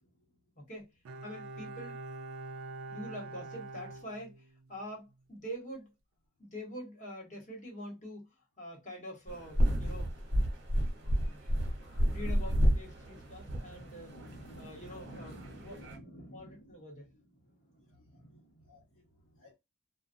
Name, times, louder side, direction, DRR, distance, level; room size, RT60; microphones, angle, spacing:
voice 1, 0.6-0.9 1.2-2.0 2.9-5.9 6.4-8.3 8.6-10.1 11.2-11.5 12.1-14.2 14.6-16.0 16.3-17.1, equal, 35° left, 1.3 m, -45 dB
Bowed string instrument, 1.0-4.8 5.1-5.2, right 2 dB, 85° right, 0.4 m, -45 dB
sound 1, 9.3-16.0, equal, 55° right, 1.0 m, -31 dB
voice 2, 10.5-12.3 12.8-16.8 17.1-19.5, equal, 85° left, 0.9 m, -54 dB
2.5 x 2.3 x 2.6 m
head